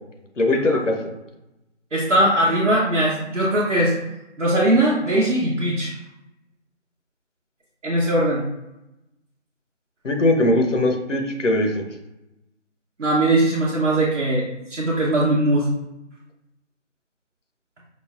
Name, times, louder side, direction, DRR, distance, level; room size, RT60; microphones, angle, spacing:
voice 1, 0.4-1.0 10.0-11.8, left 1 dB, 85° left, 3 dB, 0.9 m, -20 dB
voice 2, 1.9-3.9 4.4-5.9 7.8-8.4 13.0-14.4 14.7-15.7, right 1 dB, 80° right, -6 dB, 0.9 m, -20 dB
5.2 x 2.1 x 2.4 m, 0.92 s
figure-of-eight pair, 160°, 36 cm